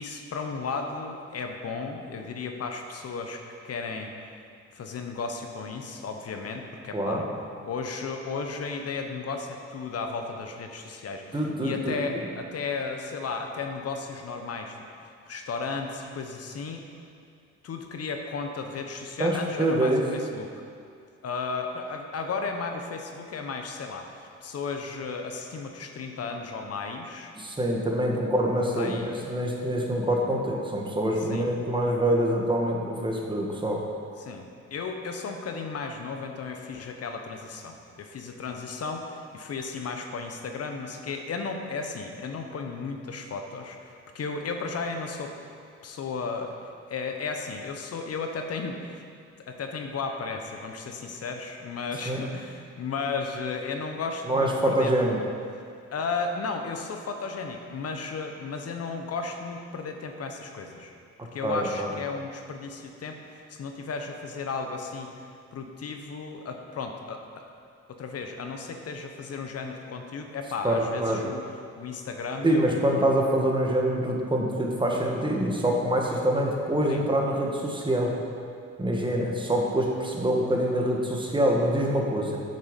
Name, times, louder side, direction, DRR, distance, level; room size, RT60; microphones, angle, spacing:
voice 1, 0.0-3.4 3.7-4.1 4.7-7.3 7.6-14.8 15.3-16.8 17.6-20.5 21.2-27.3 28.7-29.2 31.3-31.5 34.2-34.4 34.7-45.3 45.8-46.6 46.9-48.9 49.5-55.0 55.9-60.9 61.3-65.2 65.5-67.2 67.9-71.4 71.8-72.9 76.9-77.0, left 4 dB, 55° left, 4 dB, 1.0 m, -34 dB
voice 2, 6.9-7.2 11.3-12.2 19.2-20.0 27.3-33.8 52.0-52.2 54.3-55.2 61.4-61.9 70.6-71.2 72.4-78.1 78.8-82.4, right 1 dB, 15° right, -1 dB, 1.5 m, -25 dB
8.6 x 6.7 x 5.3 m, 2.3 s
cardioid pair, 90°, 30 cm